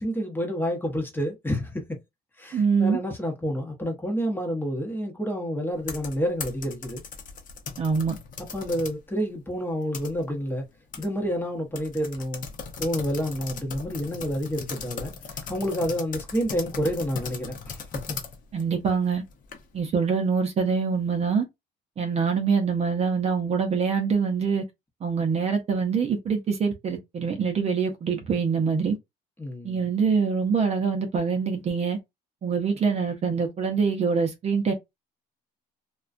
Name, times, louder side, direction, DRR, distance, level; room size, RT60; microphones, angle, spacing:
voice 1, 0.0-2.0 2.4-7.0 8.5-10.6 11.0-12.4 12.8-17.8 18.1-18.2 29.4-29.8, equal, 10° left, 0.8 m, -29 dB
voice 2, 2.5-3.0 7.8-8.1 18.5-19.2 19.7-21.4 22.0-24.6 25.0-29.0 29.6-32.0 32.4-34.7, right 5 dB, 40° right, 0.6 m, -24 dB
sound 1, 5.7-9.0 9.4-10.5 10.9-11.1 11.3-11.4 11.8-19.8, left 6 dB, 55° left, 0.7 m, -38 dB
2.3 x 2.2 x 2.4 m
cardioid pair, 110°, 17 cm